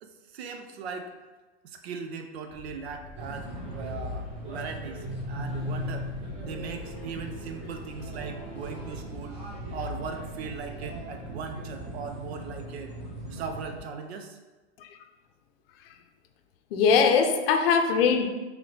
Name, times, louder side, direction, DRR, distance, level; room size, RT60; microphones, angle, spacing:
voice 1, 0.0-1.1 1.6-6.1 6.4-9.4 9.7-12.9 13.3-14.4, right 5 dB, 75° right, 6 dB, 0.7 m, -39 dB
sound 1, 2.5-9.0, left 1 dB, 15° left, 0.5 m, -47 dB
sound 2, 3.1-13.8, equal, 20° right, 1.1 m, -38 dB
sound 3, 5.3-12.1, right 5 dB, 35° right, 0.6 m, -46 dB
voice 2, 16.7-18.3, left 6 dB, 60° left, 6 dB, 0.6 m, -21 dB
3.8 x 3.1 x 3.3 m, 1.2 s
hypercardioid pair, 130°, 32 cm